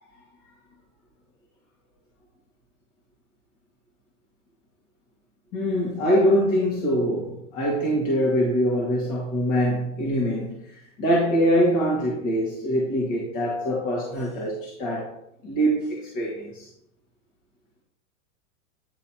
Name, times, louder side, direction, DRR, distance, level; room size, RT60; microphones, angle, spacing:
voice 1, 5.5-15.1 15.4-16.7, equal, 50° left, -4 dB, 1.9 m, -24 dB
9.6 x 4.2 x 2.9 m, 0.78 s
hypercardioid pair, 120°, 39 cm